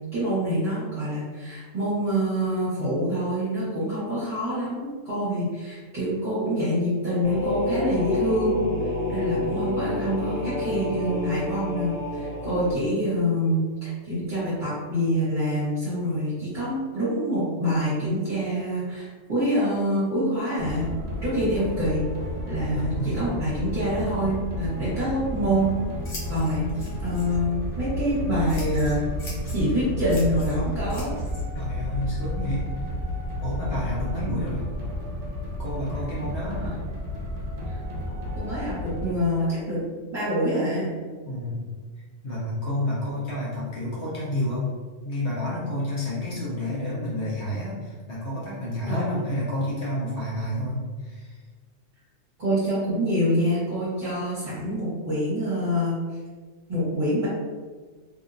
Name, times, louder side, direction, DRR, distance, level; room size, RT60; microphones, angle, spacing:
voice 1, 0.1-8.6 9.1-20.9 21.2-22.1 22.5-25.7 26.3-29.0 29.5-31.1 36.6-36.7 37.7-37.8 38.4-39.8 40.1-40.9 48.9-49.2 52.4-56.0 56.7-57.3, equal, 40° right, -13 dB, 1.4 m, -26 dB
sound 1, 7.2-12.7, left 2 dB, 45° left, 1.0 m, -29 dB
sound 2, 20.6-39.1, left 1 dB, 70° right, 1.0 m, -32 dB
voice 2, 22.7-23.2 31.5-32.6 33.4-34.6 35.6-36.7 41.2-41.7 42.2-44.7 45.0-51.4, left 1 dB, 60° left, -7 dB, 1.4 m, -30 dB
Scissors, 25.2-33.3, left 2 dB, 80° left, 1.3 m, -45 dB
3.4 x 2.7 x 2.6 m, 1.4 s
omnidirectional pair, 1.3 m